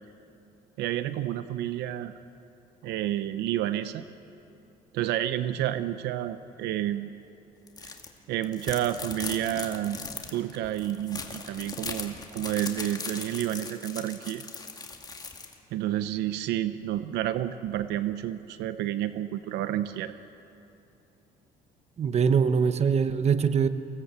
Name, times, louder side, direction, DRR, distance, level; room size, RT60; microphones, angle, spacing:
voice 1, 0.8-2.1 2.8-4.0 4.9-7.1 7.8-7.9 8.3-10.0 10.3-14.4 15.7-20.1, right 12 dB, 85° right, 12 dB, 0.8 m, -30 dB
sound 1, 7.7-8.1 8.4-15.5, left 4 dB, 25° left, 2.2 m, -39 dB
voice 2, 22.0-23.7, right 6 dB, 40° right, 11 dB, 1.1 m, -23 dB
24.0 x 17.5 x 8.3 m, 2.8 s
cardioid pair, 110°, 17 cm